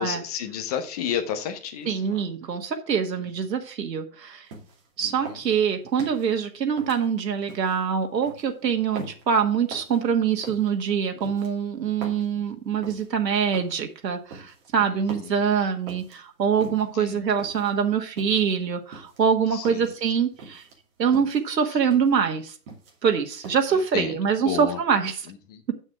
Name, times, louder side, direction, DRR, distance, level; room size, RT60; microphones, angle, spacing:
voice 1, 0.0-2.2 3.1-3.4 5.0-5.4 12.1-12.4 14.8-15.4 16.6-17.2 19.5-19.9 21.7-21.8 23.7-24.8 25.3-25.6, left 9 dB, 25° left, 6 dB, 0.9 m, -33 dB
voice 2, 1.9-4.4 5.0-20.6 21.0-22.5 23.0-25.2 25.7-25.8, right 7 dB, 90° right, 5 dB, 1.6 m, -24 dB
sound 1, 4.5-4.9 5.3-6.3 6.8-7.8 8.2-8.5 9.0-9.3 9.7-10.0 10.4-10.7 11.2-12.3 12.8-13.1 13.5-13.8 14.3-14.7 15.1-15.4 15.9-16.2 16.6-17.0 17.4-17.7 18.2-18.5 18.9-20.0 20.4-20.8 21.1-21.4 21.9-22.2 22.5-23.1 23.4-23.7, right 3 dB, 35° right, 2.6 m, -42 dB
8.8 x 6.4 x 4.7 m, 0.38 s
hypercardioid pair, 160°, 48 cm